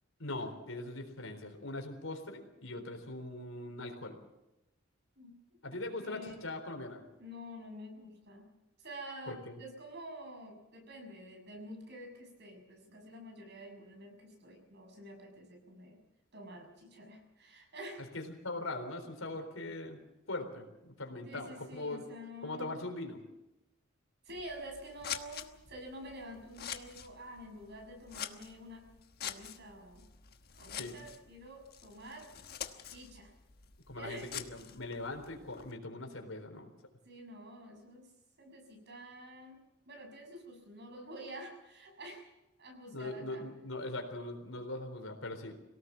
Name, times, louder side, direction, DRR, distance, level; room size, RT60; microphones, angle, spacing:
voice 1, 0.2-4.2 5.6-7.0 9.3-9.6 18.1-20.0 20.3-22.0 22.4-23.2 30.8-30.9 33.9-36.7 42.9-45.6, left 2 dB, 85° left, 5 dB, 4.1 m, -41 dB
voice 2, 6.0-6.4 7.2-8.5 8.8-16.0 16.3-18.1 21.2-22.8 24.2-28.9 29.2-30.0 30.6-32.3 32.9-33.3 33.9-34.4 37.0-38.1 38.4-39.6 39.9-42.3 42.6-43.5, equal, 55° right, 3 dB, 6.4 m, -48 dB
Scissors, 24.3-35.7, left 9 dB, 50° left, 1.3 m, -46 dB
23.5 x 18.0 x 7.1 m, 0.94 s
head